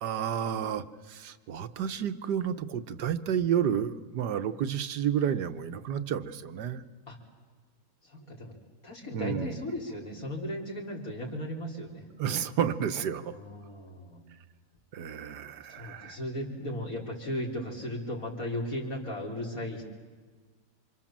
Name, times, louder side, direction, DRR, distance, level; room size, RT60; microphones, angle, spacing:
voice 1, 0.0-6.8 9.1-9.6 12.2-13.3 14.9-16.2, right 8 dB, 75° right, 11 dB, 1.6 m, -31 dB
voice 2, 8.0-8.6 8.8-12.0 13.3-14.2 15.6-19.8, left 1 dB, 50° left, -1 dB, 4.3 m, -36 dB
28.5 x 26.0 x 7.4 m, 1.5 s
omnidirectional pair, 1.9 m